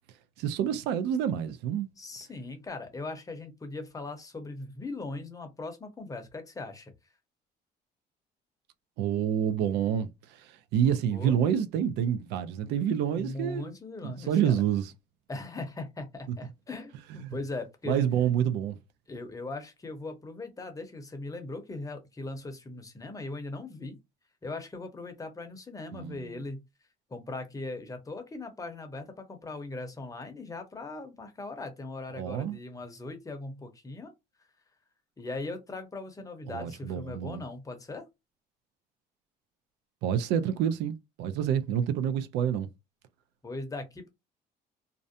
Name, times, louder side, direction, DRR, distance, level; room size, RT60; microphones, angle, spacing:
voice 1, 0.4-1.9 9.0-10.1 10.7-13.6 14.0-14.9 16.3-16.4 17.1-17.3 17.9-18.8 25.9-26.2 32.2-32.6 36.5-37.4 40.0-42.7, right 9 dB, 85° right, 0.4 m, -28 dB
voice 2, 2.0-6.9 10.8-11.4 13.1-14.6 15.3-18.1 19.1-24.0 24.4-26.6 27.1-34.1 35.2-38.1 43.4-44.1, left 2 dB, 20° left, 0.7 m, -39 dB
2.5 x 2.1 x 2.6 m
cardioid pair, 110°, 17 cm